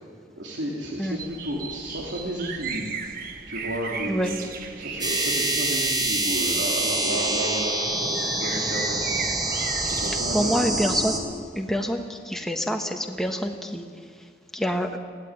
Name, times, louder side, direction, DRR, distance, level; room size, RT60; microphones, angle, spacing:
voice 1, 0.4-3.0 3.5-4.5 4.7-9.3 9.8-10.5, right 1 dB, 85° right, -3 dB, 3.0 m, -32 dB
sound 1, 1.2-10.2, right 5 dB, 50° right, 1.5 m, -36 dB
sound 2, 5.0-11.2, right 2 dB, 25° right, 3.8 m, -26 dB
voice 2, 10.3-11.2 11.6-13.8 14.5-14.9, equal, ahead, 3 dB, 1.4 m, -26 dB
22.5 x 15.5 x 9.7 m, 2.1 s
head